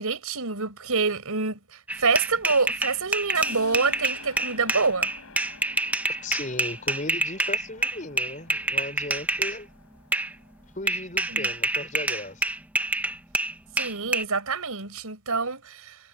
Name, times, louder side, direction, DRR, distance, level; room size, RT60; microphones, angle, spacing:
voice 1, 0.0-5.1 11.3-11.5 13.8-16.0, right 4 dB, 80° right, 4.2 m, -26 dB
sound 1, 1.9-9.6 10.1-10.3 10.9-14.2, right 2 dB, 5° right, 0.5 m, -27 dB
sound 2, 3.3-10.9, left 4 dB, 70° left, 6.3 m, -48 dB
voice 2, 6.2-9.7 10.7-12.5, left 2 dB, 35° left, 4.6 m, -36 dB
head